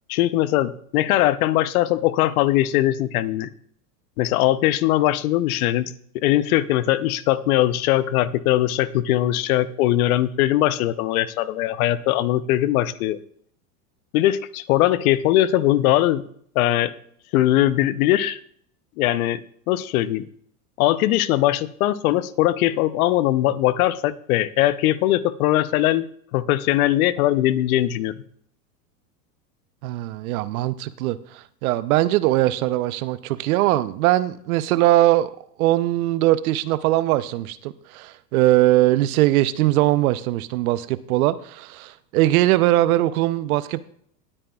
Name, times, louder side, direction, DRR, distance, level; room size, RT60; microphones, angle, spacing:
voice 1, 0.1-3.5 4.2-13.2 14.1-16.2 16.5-16.9 17.3-18.4 19.0-19.4 19.7-20.2 20.8-26.1 26.3-28.2, left 14 dB, 60° left, 0.7 m, -20 dB
voice 2, 29.8-35.3 35.6-43.8, right 16 dB, 60° right, 0.7 m, -21 dB
19.0 x 8.7 x 2.3 m
hypercardioid pair, 110°, 48 cm